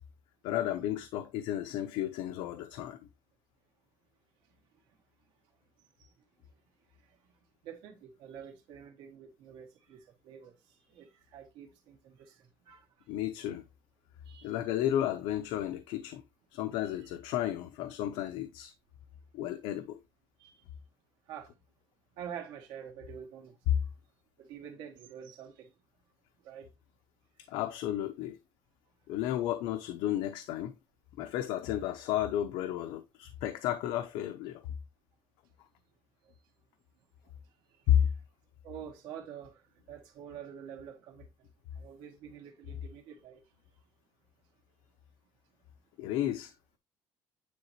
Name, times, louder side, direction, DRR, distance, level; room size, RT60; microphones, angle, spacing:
voice 1, 0.4-3.0 13.1-13.6 14.4-16.2 16.5-18.7 19.3-20.0 27.5-28.4 29.1-30.7 31.2-34.6 37.9-38.1 46.0-46.5, left 11 dB, 85° left, 0.6 m, -32 dB
voice 2, 7.6-10.5 10.9-12.8 14.3-14.6 20.4-20.7 21.3-21.5 22.2-23.6 24.4-25.7 26.4-26.7 33.2-33.3 37.9-38.0 38.6-39.6 39.9-41.3 41.7-43.4, right 8 dB, 85° right, 2.1 m, -47 dB
9.4 x 4.0 x 2.9 m
cardioid pair, 175°, 8 cm